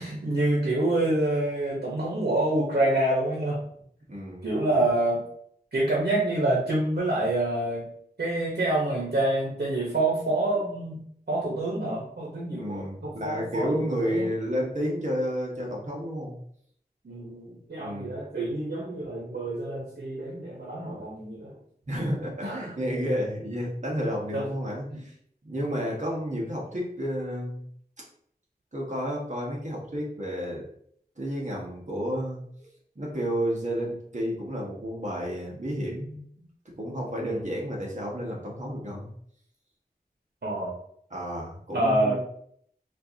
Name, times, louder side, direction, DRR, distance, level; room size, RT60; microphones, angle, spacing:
voice 1, 0.0-3.6 4.4-5.2 5.7-7.9 8.2-11.0 11.3-14.3 17.0-21.5 22.4-22.7 24.3-24.5 24.9-25.0 37.2-37.4 40.4-40.7 41.7-42.2, right 1 dB, 75° right, -4 dB, 1.0 m, -27 dB
voice 2, 4.1-4.9 12.6-16.4 17.8-18.1 21.9-25.1 25.4-27.6 28.7-30.6 31.2-32.7 32.9-36.5 36.8-39.1 41.1-42.2, equal, 45° right, -3 dB, 1.1 m, -31 dB
4.3 x 2.5 x 2.8 m, 0.65 s
wide cardioid pair, 55°, 17 cm